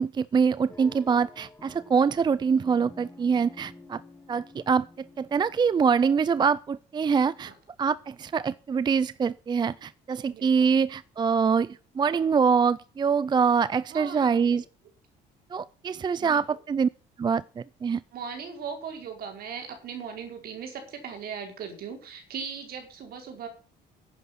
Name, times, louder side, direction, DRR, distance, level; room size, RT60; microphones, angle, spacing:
voice 1, 0.0-4.0 4.3-7.5 7.8-14.6 15.5-16.9 17.2-18.0, right 6 dB, 25° right, 0.5 m, -24 dB
sound 1, 0.7-6.1, left 2 dB, 15° left, 1.9 m, -50 dB
voice 2, 10.3-10.8 13.9-14.6 16.2-16.4 18.1-23.5, right 6 dB, 65° right, 5.1 m, -38 dB
11.0 x 9.5 x 5.9 m
cardioid pair, 110°, 17 cm